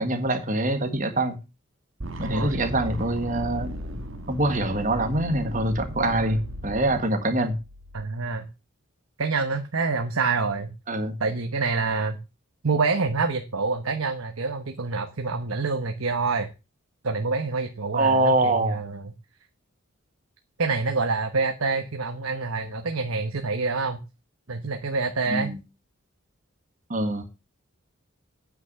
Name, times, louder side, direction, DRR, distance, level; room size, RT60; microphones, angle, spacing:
voice 1, 0.0-1.4 2.2-3.7 4.3-7.6 10.9-11.2 17.9-18.8 25.3-25.6 26.9-27.2, right 2 dB, 35° right, 6 dB, 1.6 m, -24 dB
sound 1, 2.0-8.0, equal, 70° right, 1.6 m, -36 dB
voice 2, 2.2-2.6 6.1-6.4 7.9-8.5 9.2-10.7 11.2-12.2 12.6-16.5 17.0-19.1 20.6-24.0 24.5-25.5, right 4 dB, 85° right, 5 dB, 1.1 m, -27 dB
9.1 x 6.0 x 6.8 m, 0.29 s
head